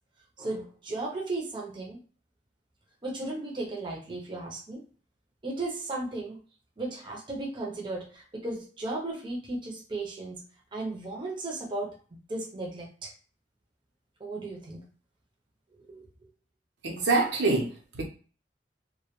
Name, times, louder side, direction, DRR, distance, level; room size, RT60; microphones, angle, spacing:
voice 1, 0.4-2.0 3.0-4.8 5.4-6.4 6.8-10.4 10.7-12.0 12.3-13.1 14.2-14.9 15.7-16.3, right 2 dB, 25° right, -1 dB, 0.6 m, -35 dB
voice 2, 16.8-18.0, right 3 dB, 80° right, 0 dB, 0.7 m, -26 dB
2.2 x 2.2 x 2.9 m, 0.39 s
head